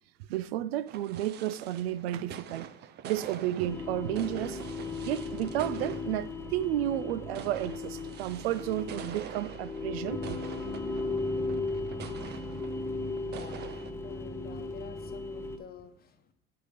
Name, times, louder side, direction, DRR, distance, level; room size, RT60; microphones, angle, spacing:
voice 1, 0.3-2.7 3.0-4.6 5.0-10.4, right 13 dB, 90° right, 0.5 m, -32 dB
sound 1, 0.9-13.9, right 9 dB, 35° right, 0.4 m, -46 dB
sound 2, 3.6-15.6, left 3 dB, 10° left, 0.7 m, -36 dB
voice 2, 13.3-13.6 14.0-16.3, left 8 dB, 30° left, 1.0 m, -48 dB
7.8 x 3.4 x 6.5 m
supercardioid pair, 105°, 30 cm